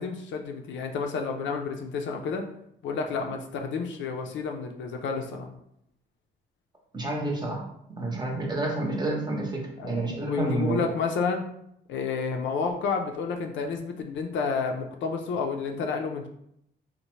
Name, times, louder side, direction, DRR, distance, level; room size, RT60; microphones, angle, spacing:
voice 1, 0.0-2.4 2.8-5.5 9.8-11.5 11.9-16.3, left 5 dB, 70° left, 4 dB, 0.4 m, -30 dB
voice 2, 6.9-7.6 8.0-10.8, right 2 dB, 20° right, -1 dB, 0.7 m, -29 dB
2.7 x 2.1 x 3.0 m, 0.75 s
cardioid pair, 90°, 20 cm